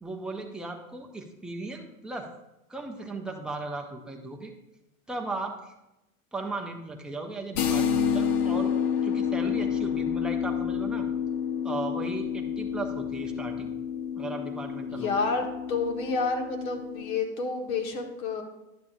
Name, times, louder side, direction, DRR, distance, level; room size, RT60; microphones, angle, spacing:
voice 1, 0.0-2.3 2.7-4.5 5.1-5.7 6.3-8.7 9.0-11.0 11.6-13.7 14.2-15.1, right 2 dB, ahead, 1 dB, 0.4 m, -36 dB
sound 1, 7.6-17.2, left 8 dB, 60° left, 0.9 m, -29 dB
voice 2, 14.9-18.4, left 4 dB, 75° left, 3 dB, 1.6 m, -29 dB
11.0 x 7.0 x 2.6 m, 0.93 s
supercardioid pair, 135°, 42 cm